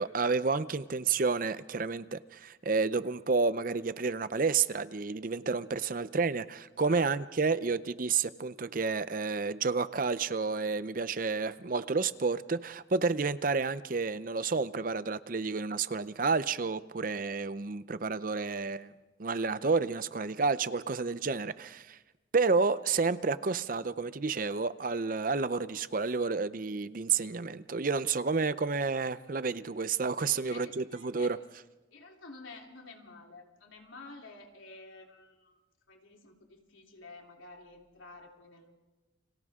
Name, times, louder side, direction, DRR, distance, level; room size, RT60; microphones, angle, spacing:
voice 1, 0.0-18.9 19.2-22.0 22.3-31.4, right 4 dB, 45° right, 14 dB, 0.6 m, -30 dB
voice 2, 6.8-7.6 30.5-31.3 31.9-35.6 35.9-38.7, left 3 dB, 90° left, 1 dB, 3.4 m, -51 dB
30.0 x 25.5 x 3.7 m, 1.1 s
head